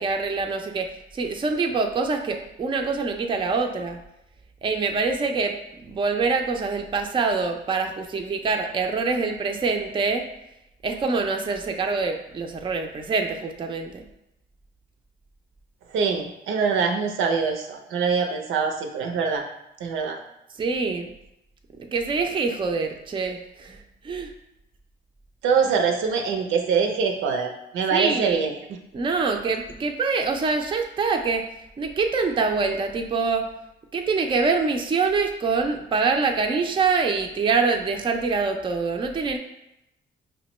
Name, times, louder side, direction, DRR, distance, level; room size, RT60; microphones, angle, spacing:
voice 1, 0.0-4.0 4.6-5.6 5.8-10.3 10.8-14.1 20.6-21.1 21.8-23.8 24.0-24.3 27.9-28.4 28.9-31.5 31.8-33.5 33.9-39.4, right 4 dB, 25° right, 4 dB, 0.4 m, -25 dB
voice 2, 15.9-19.4 19.8-20.2 25.4-28.8, right 5 dB, 85° right, 3 dB, 0.6 m, -24 dB
5.0 x 2.1 x 3.0 m, 0.84 s
cardioid pair, 90°, 20 cm